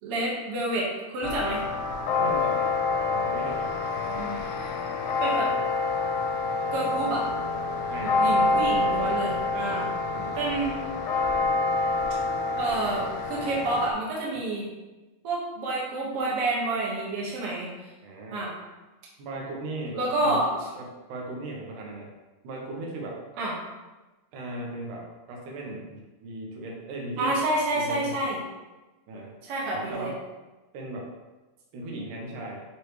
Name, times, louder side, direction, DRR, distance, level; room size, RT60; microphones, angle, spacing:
voice 1, 0.0-1.6 4.1-4.8 5.2-5.5 6.7-7.2 8.0-9.9 10.4-10.7 12.6-14.7 15.2-17.7 18.3-18.5 19.9-20.5 23.4-23.5 27.2-28.4 29.4-30.1, right 2 dB, 55° right, -4 dB, 2.1 m, -29 dB
sound 1, 1.2-13.9, left 3 dB, 90° left, 2.1 m, -27 dB
voice 2, 2.2-2.7 3.1-3.9 7.9-8.3 10.1-10.4 18.0-18.5 19.2-20.4 20.8-22.1 22.4-23.2 24.3-27.4 27.7-28.2 29.1-29.3 29.6-30.2 30.7-31.1 31.7-32.6, right 2 dB, 85° right, -1 dB, 2.5 m, -37 dB
9.6 x 3.2 x 3.1 m, 1.1 s
omnidirectional pair, 3.5 m